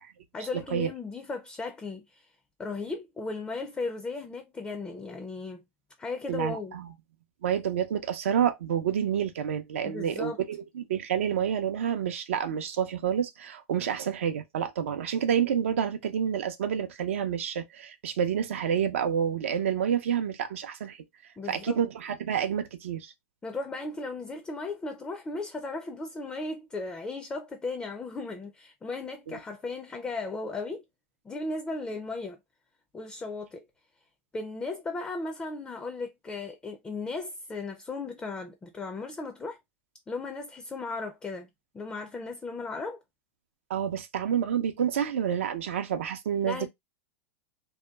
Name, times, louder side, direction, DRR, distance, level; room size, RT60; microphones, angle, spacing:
voice 1, 0.3-2.3 2.6-5.6 6.0-6.8 9.8-10.4 21.4-21.8 23.4-30.8 31.2-32.4 32.9-33.6 34.3-39.6 40.1-41.5 41.7-43.0 46.5-46.7, left 3 dB, 15° left, 0.4 m, -36 dB
voice 2, 6.3-6.9 7.4-21.0 21.5-23.1 29.3-29.4 43.7-46.7, right 8 dB, 80° right, 0.5 m, -28 dB
2.8 x 2.2 x 2.2 m
hypercardioid pair, 120°, 7 cm